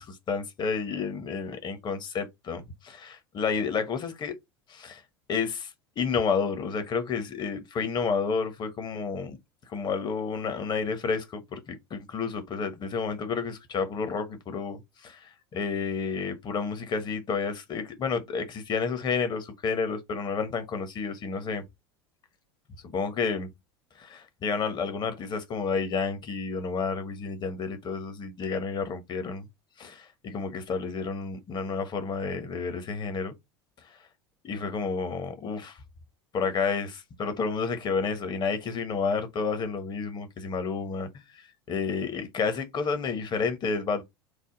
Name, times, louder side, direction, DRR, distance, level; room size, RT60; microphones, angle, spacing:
voice 1, 0.0-4.4 4.7-5.0 5.3-9.4 9.7-21.6 22.8-23.5 23.9-29.5 29.8-33.3 33.8-34.0 34.4-35.8 36.3-44.0, left 5 dB, 35° left, 0.9 m, -30 dB
3.3 x 2.0 x 3.8 m
hypercardioid pair, 80°, 13 cm